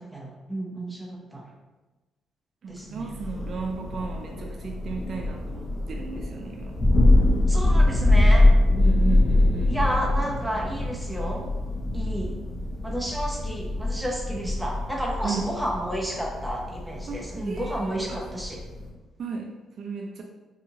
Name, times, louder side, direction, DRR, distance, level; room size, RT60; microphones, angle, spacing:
voice 1, 0.0-1.4 2.7-3.2 7.5-8.5 9.7-11.5 11.9-12.4 12.8-18.6, right 1 dB, 5° right, -2 dB, 0.6 m, -31 dB
voice 2, 2.6-6.8 8.7-9.8 14.4-14.5 15.2-15.6 17.1-18.2 19.2-20.2, right 4 dB, 55° right, 1 dB, 0.3 m, -34 dB
Thunder, 3.1-18.9, left 1 dB, 35° left, 0.6 m, -23 dB
2.7 x 2.4 x 2.8 m, 1.2 s
cardioid pair, 90°, 0 cm